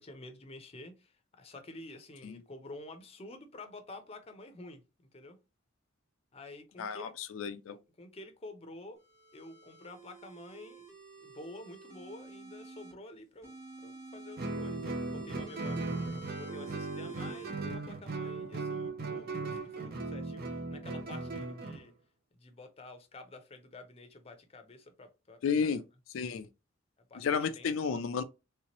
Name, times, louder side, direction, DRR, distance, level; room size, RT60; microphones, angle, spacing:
voice 1, 0.0-4.8 5.1-5.4 6.3-7.1 7.7-9.0 9.3-10.9 11.2-15.8 16.3-21.9 22.4-25.8 27.1-27.7, left 2 dB, 30° left, 0.6 m, -49 dB
voice 2, 6.8-7.8 25.4-25.8 26.1-26.5 27.2-28.2, left 6 dB, 90° left, 0.4 m, -32 dB
sound 1, 9.0-12.9 13.4-17.5, right 4 dB, 15° right, 1.2 m, -49 dB
Guitar, 14.4-21.8, right 3 dB, 50° right, 0.6 m, -37 dB
3.3 x 2.9 x 2.9 m
head